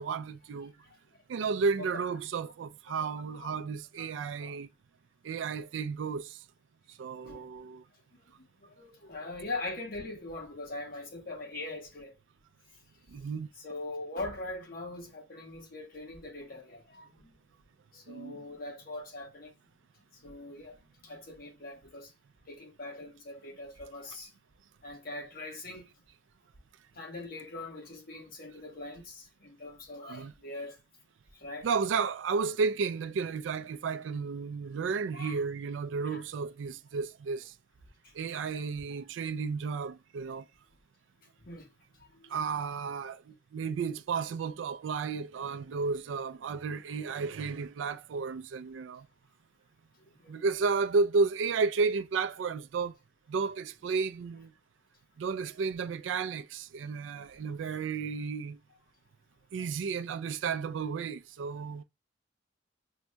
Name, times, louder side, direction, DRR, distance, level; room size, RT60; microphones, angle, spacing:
voice 1, 0.0-0.7 1.3-4.7 5.2-6.4 6.9-7.8 13.1-13.5 18.1-18.4 30.1-30.3 31.6-37.5 38.1-40.4 42.3-49.1 50.3-53.0 53.3-54.5 55.2-58.6 59.5-61.8, right 5 dB, 85° right, 0.3 m, -32 dB
voice 2, 0.8-1.2 1.8-2.0 3.3-3.6 4.0-4.6 7.2-7.5 8.4-12.1 13.6-17.3 17.9-19.5 20.1-22.1 22.5-24.3 24.8-25.9 26.9-30.7 31.3-31.7 35.1-35.4 36.0-36.2 38.0-38.1 41.4-41.7 42.1-42.4 50.0-50.3 59.6-59.7, left 2 dB, 55° left, 1.2 m, -42 dB
6.0 x 2.7 x 2.2 m
head